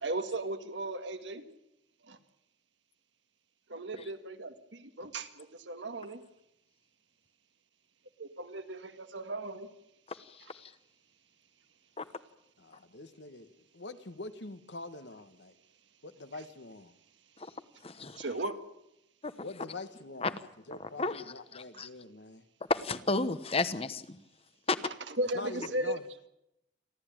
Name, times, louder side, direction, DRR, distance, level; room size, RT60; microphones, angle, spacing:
voice 1, 0.0-1.4 2.1-2.2 3.7-6.2 8.2-9.7 18.2-18.6 24.8-26.0, right 1 dB, 75° right, 8 dB, 1.8 m, -36 dB
voice 2, 10.1-10.7 12.0-12.1 17.4-17.5 17.8-18.2 19.2-19.3 20.2-20.3 21.0-21.2 21.5-21.9 22.7-24.2 24.7-24.8, left 3 dB, 30° left, 13 dB, 1.0 m, -32 dB
voice 3, 12.6-15.5 16.0-16.9 19.4-20.4 20.7-22.4 25.3-26.0, left 2 dB, 70° left, 10 dB, 1.4 m, -45 dB
28.5 x 12.5 x 9.0 m, 0.83 s
head